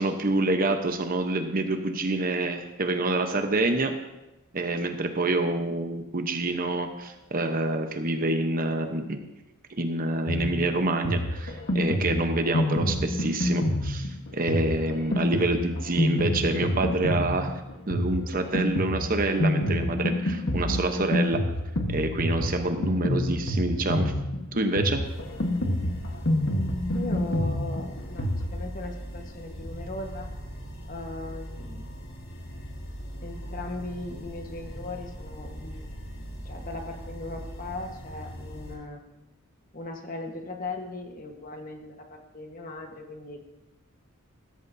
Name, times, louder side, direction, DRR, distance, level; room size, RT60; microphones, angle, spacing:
voice 1, 0.0-3.9 4.5-9.2 9.7-17.5 17.9-21.4 21.9-24.1 24.5-25.0, right 2 dB, 40° right, 6 dB, 0.9 m, -27 dB
Drum kit, 10.3-28.5, left 1 dB, 60° left, 1.3 m, -28 dB
sound 1, 25.0-38.7, equal, 90° left, 3.1 m, -40 dB
voice 2, 26.9-30.3 30.9-31.8 33.2-35.9 36.4-39.0 39.7-43.4, left 2 dB, 40° left, 3 dB, 1.3 m, -38 dB
15.0 x 13.5 x 2.7 m, 0.99 s
head